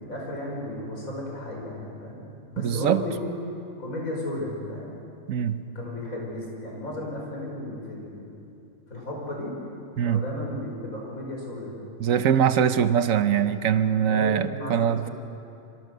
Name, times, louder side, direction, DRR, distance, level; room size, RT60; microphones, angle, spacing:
voice 1, 0.0-2.2 2.5-3.2 3.8-5.0 5.7-8.3 8.9-9.5 10.0-11.7 14.1-15.1, left 1 dB, 85° left, -1 dB, 6.0 m, -34 dB
voice 2, 2.6-3.0 5.3-5.6 10.0-10.2 12.0-15.1, right 8 dB, 80° right, 11 dB, 1.3 m, -22 dB
26.0 x 25.0 x 6.6 m, 2.6 s
omnidirectional pair, 1.4 m